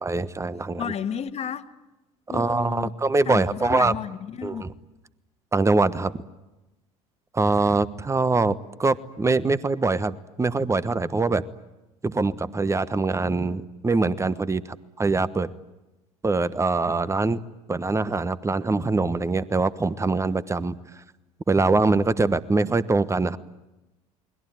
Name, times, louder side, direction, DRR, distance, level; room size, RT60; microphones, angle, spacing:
voice 1, 0.0-0.8 2.3-3.9 4.4-4.7 5.5-6.2 7.3-11.4 12.0-15.5 16.2-17.4 17.7-20.8 21.5-23.4, right 3 dB, 15° right, 1.2 m, -23 dB
voice 2, 0.8-1.7 2.3-2.9 3.2-4.7, left 8 dB, 35° left, 1.7 m, -32 dB
29.5 x 21.0 x 9.3 m
figure-of-eight pair, 65°, 17 cm